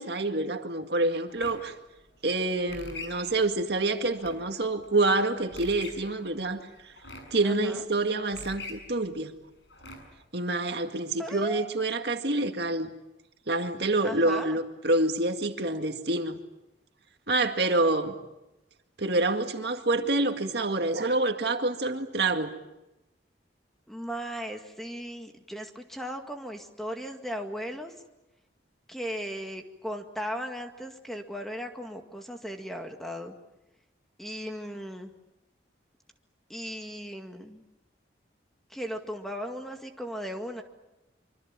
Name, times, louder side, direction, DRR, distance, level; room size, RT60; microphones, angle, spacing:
voice 1, 0.0-1.7 2.2-6.9 7.3-9.3 10.3-12.9 13.5-16.4 17.3-18.2 19.0-22.5, right 2 dB, 60° right, 5 dB, 2.0 m, -27 dB
sound 1, 1.3-10.3, left 3 dB, 75° left, 7.1 m, -46 dB
voice 2, 7.4-7.9 11.2-11.8 14.0-14.6 23.9-27.9 28.9-33.3 34.2-35.1 36.5-37.6 38.7-40.6, equal, ahead, 4 dB, 2.0 m, -37 dB
25.5 x 25.0 x 7.5 m, 0.97 s
head